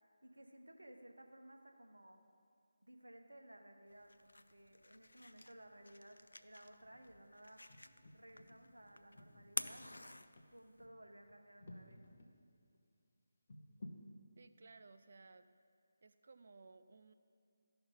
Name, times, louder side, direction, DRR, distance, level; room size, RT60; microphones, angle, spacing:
voice 1, 0.0-2.2 2.8-7.6 8.1-10.0 10.5-12.0, right 1 dB, 85° right, 4 dB, 1.1 m, -58 dB
sound 1, 3.9-10.8, left 2 dB, 75° left, 0.4 m, -50 dB
sound 2, 6.8-7.2 7.7-12.3 12.7-12.8 13.5-14.1, left 1 dB, 50° left, 1.2 m, -56 dB
voice 2, 14.4-15.5 16.0-17.1, right 3 dB, 55° right, 10 dB, 0.5 m, -60 dB
13.5 x 5.8 x 5.4 m, 2.4 s
figure-of-eight pair, 155°, 0 cm